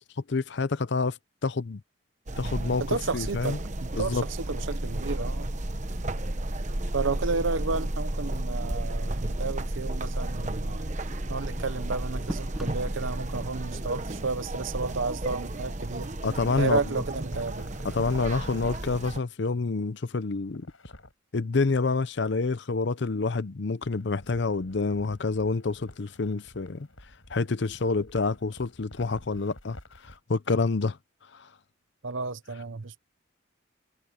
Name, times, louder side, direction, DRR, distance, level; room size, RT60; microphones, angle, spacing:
voice 1, 0.3-1.8 2.4-3.6 4.0-4.2 16.2-17.0 17.9-20.7 21.3-26.9 27.3-29.8 30.0-31.0 31.3-31.5, left 3 dB, 60° left, 0.6 m, -28 dB
sound 1, 2.3-19.2, right 1 dB, 35° right, 1.1 m, -33 dB
voice 2, 2.8-5.5 6.9-10.9 11.3-16.1 16.6-17.7 32.0-33.0, right 4 dB, 70° right, 0.8 m, -32 dB
sound 2, 8.6-13.4, equal, ahead, 1.0 m, -44 dB
sound 3, 17.3-18.7 20.5-21.1 23.8-30.2, left 1 dB, 80° left, 6.6 m, -49 dB
head